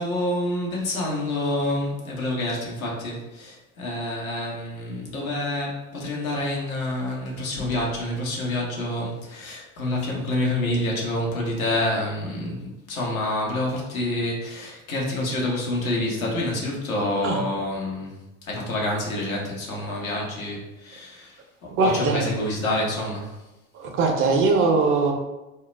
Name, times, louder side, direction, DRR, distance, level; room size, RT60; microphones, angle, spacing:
voice 1, 0.0-18.2 18.5-21.4 21.8-23.3, left 1 dB, 80° left, -2 dB, 0.8 m, -27 dB
voice 2, 21.7-22.3 23.7-25.1, right 3 dB, 35° right, 3 dB, 0.4 m, -21 dB
2.2 x 2.0 x 3.0 m, 1.0 s
figure-of-eight pair, 70°, 41 cm